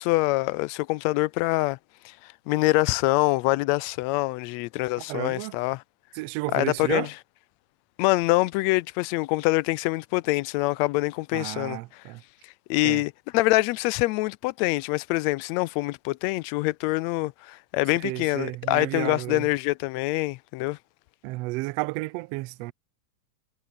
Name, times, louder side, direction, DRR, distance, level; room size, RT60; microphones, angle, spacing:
voice 1, 0.0-1.8 2.0-5.8 6.5-7.1 8.0-12.0 12.7-20.8, left 20 dB, 80° left, 1.7 m, -25 dB
voice 2, 5.1-5.6 6.1-7.1 11.3-12.2 12.8-13.0 18.0-19.5 21.2-22.7, right 21 dB, 85° right, 1.4 m, -32 dB
omnidirectional pair, 3.4 m